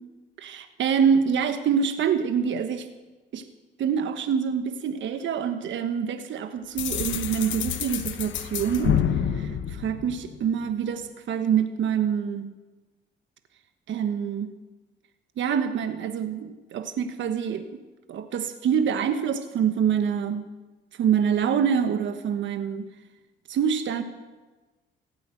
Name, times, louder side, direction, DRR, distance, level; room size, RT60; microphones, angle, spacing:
voice 1, 0.4-2.9 3.3-3.5 3.8-9.0 9.3-12.5 13.9-14.5 15.4-17.7 18.1-20.5 21.0-22.9 23.5-24.0, right 7 dB, 70° right, 8 dB, 1.2 m, -26 dB
sound 1, 6.8-10.6, left 9 dB, 70° left, 1.0 m, -28 dB
16.0 x 8.3 x 9.0 m, 1.2 s
cardioid pair, 90°, 20 cm